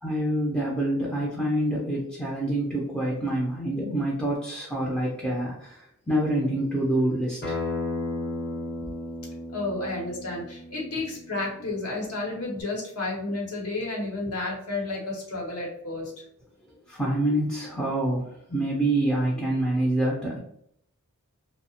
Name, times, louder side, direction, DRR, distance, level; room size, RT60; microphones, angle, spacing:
voice 1, 0.0-7.6 16.9-20.4, right 1 dB, 5° left, -4 dB, 0.4 m, -26 dB
Acoustic guitar, 7.4-12.6, left 2 dB, 45° left, 0.7 m, -35 dB
voice 2, 9.5-16.1, left 2 dB, 85° left, -2 dB, 0.9 m, -31 dB
2.7 x 2.1 x 2.7 m, 0.70 s
head